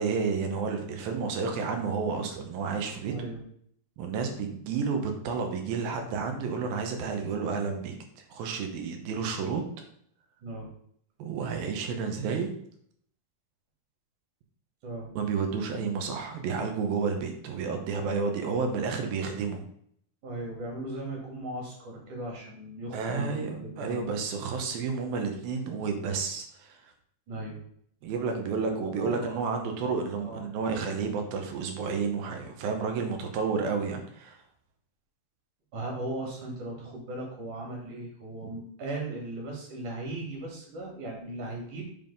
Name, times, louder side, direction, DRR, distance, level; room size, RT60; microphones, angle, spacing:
voice 1, 0.0-3.3 4.0-9.6 11.2-12.5 15.2-19.7 22.9-26.9 28.0-34.4 38.4-38.5, right 5 dB, 85° right, 4 dB, 2.9 m, -31 dB
voice 2, 3.1-3.4 10.4-10.7 14.8-15.1 20.2-24.2 27.3-27.6 28.7-29.4 30.2-30.4 35.7-41.8, right 2 dB, 60° right, -1 dB, 3.5 m, -37 dB
7.5 x 3.8 x 5.3 m, 0.66 s
omnidirectional pair, 4.2 m